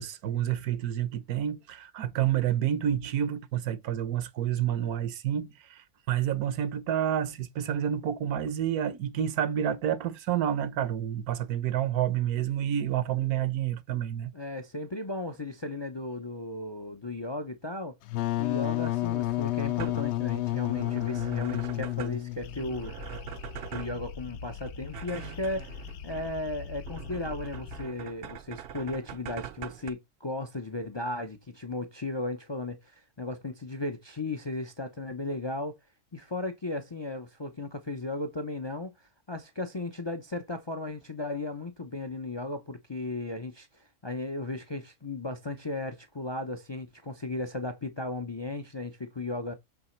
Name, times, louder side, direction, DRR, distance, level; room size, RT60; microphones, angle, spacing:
voice 1, 0.0-14.3, right 10 dB, 80° right, 1.3 m, -29 dB
voice 2, 14.3-18.0 18.4-22.9 23.7-25.7 26.0-35.8 36.1-38.9 39.3-49.5, left 2 dB, 45° left, 0.3 m, -35 dB
Wind instrument woodwind instrument, 18.1-22.6, left 17 dB, 65° left, 0.7 m, -30 dB
sound 1, 19.2-29.9, right 10 dB, 60° right, 0.6 m, -43 dB
sound 2, 22.4-27.9, left 6 dB, 85° left, 1.2 m, -42 dB
7.9 x 3.9 x 4.4 m
omnidirectional pair, 1.5 m